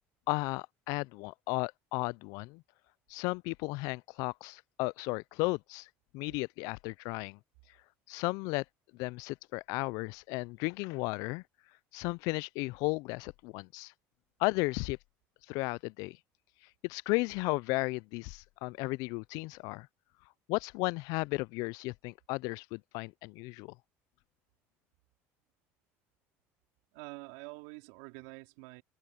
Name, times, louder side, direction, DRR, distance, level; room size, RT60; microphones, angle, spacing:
voice 1, 0.3-2.6 3.1-5.9 6.1-7.4 8.1-8.6 8.9-11.4 11.9-13.9 14.4-15.0 15.5-16.2 16.8-19.9 20.5-23.7, left 25 dB, 70° left, 0.4 m, -34 dB
voice 2, 26.9-28.8, right 27 dB, 80° right, 4.2 m, -47 dB
open air
supercardioid pair, 95°, 6 cm